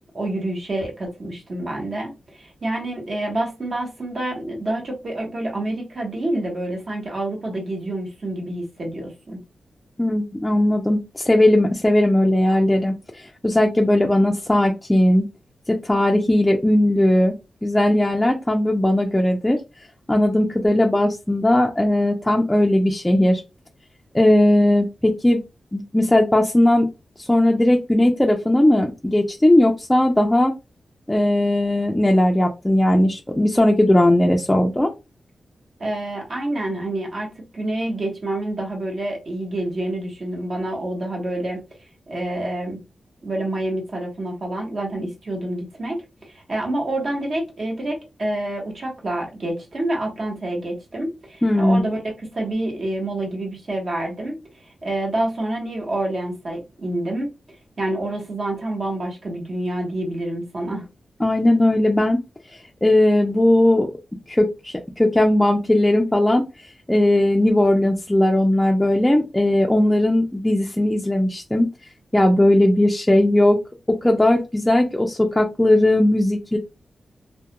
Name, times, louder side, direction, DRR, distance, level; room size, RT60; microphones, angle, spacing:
voice 1, 0.1-9.4 35.8-41.6 42.1-42.8 43.2-57.3 57.8-60.9, right 1 dB, 50° right, 1.0 m, -27 dB
voice 2, 10.0-15.2 15.7-17.3 17.6-19.6 20.1-23.4 24.1-25.4 25.7-26.9 27.2-30.6 31.1-34.9 51.4-51.9 61.2-62.2 62.8-63.9 64.3-66.5 66.9-71.7 72.1-73.6 74.0-76.6, left 1 dB, 10° left, 0.3 m, -18 dB
2.2 x 2.1 x 2.8 m
wide cardioid pair, 100°, 0 cm